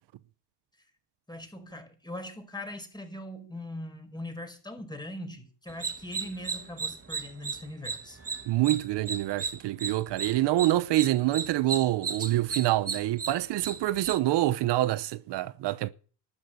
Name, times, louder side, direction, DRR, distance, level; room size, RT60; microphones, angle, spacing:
voice 1, 1.3-8.2, left 1 dB, 10° left, 5.2 m, -41 dB
sound 1, 5.7-14.2, right 5 dB, 35° right, 2.1 m, -35 dB
voice 2, 8.5-15.9, right 16 dB, 80° right, 0.9 m, -26 dB
12.5 x 8.8 x 9.3 m
cardioid pair, 85°, 41 cm